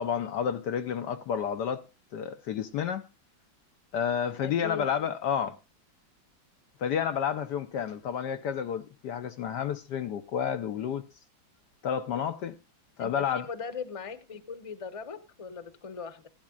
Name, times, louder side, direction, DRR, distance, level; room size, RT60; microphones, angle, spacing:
voice 1, 0.0-1.8 2.1-3.1 3.9-5.6 6.8-11.0 11.8-12.6 13.0-13.5, left 8 dB, 70° left, 1.2 m, -30 dB
voice 2, 4.4-4.9 13.0-16.3, left 5 dB, 25° left, 0.8 m, -39 dB
16.0 x 11.5 x 2.4 m
omnidirectional pair, 2.1 m